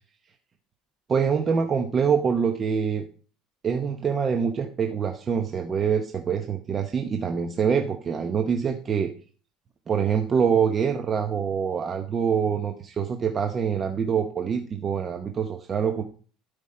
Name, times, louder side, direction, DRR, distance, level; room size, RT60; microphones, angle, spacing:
voice 1, 1.1-3.0 3.6-9.1 9.9-16.0, right 6 dB, 30° right, 4 dB, 0.8 m, -25 dB
12.5 x 5.3 x 4.3 m, 0.42 s
cardioid pair, 145°, 0 cm